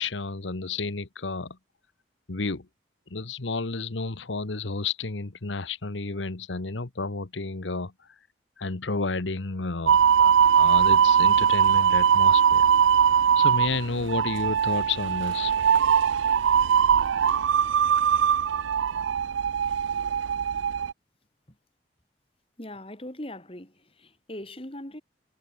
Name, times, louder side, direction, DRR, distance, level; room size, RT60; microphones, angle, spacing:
voice 1, 0.0-1.6 2.3-2.7 3.1-8.1 8.6-12.7 13.3-15.5, left 3 dB, 80° left, 1.2 m, -31 dB
sound 1, 9.9-20.9, right 8 dB, 90° right, 0.4 m, -21 dB
voice 2, 22.6-25.0, left 1 dB, 30° left, 2.9 m, -40 dB
head